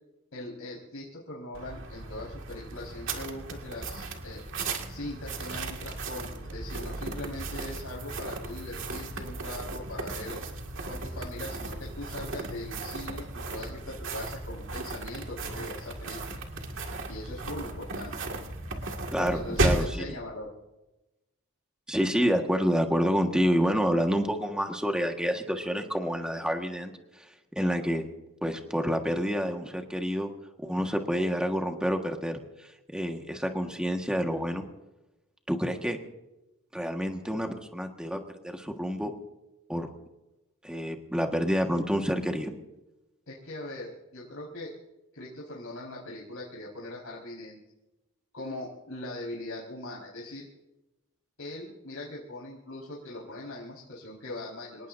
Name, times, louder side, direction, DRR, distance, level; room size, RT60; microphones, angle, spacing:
voice 1, 0.3-4.4 4.9-10.4 10.9-16.2 17.1-18.1 19.2-20.5 43.3-44.7 45.1-47.6 48.3-50.5 51.4-54.9, left 1 dB, 70° left, -5 dB, 4.8 m, -40 dB
sound 1, 1.5-20.0, right 2 dB, 60° right, 2.1 m, -35 dB
voice 2, 19.1-20.0 21.9-27.2 27.5-28.1 28.4-30.3 30.6-32.4 32.9-34.6 35.5-36.0 36.7-39.1 39.7-39.9 40.6-42.5, equal, 5° right, 3 dB, 1.5 m, -28 dB
27.0 x 19.0 x 2.7 m, 0.98 s
head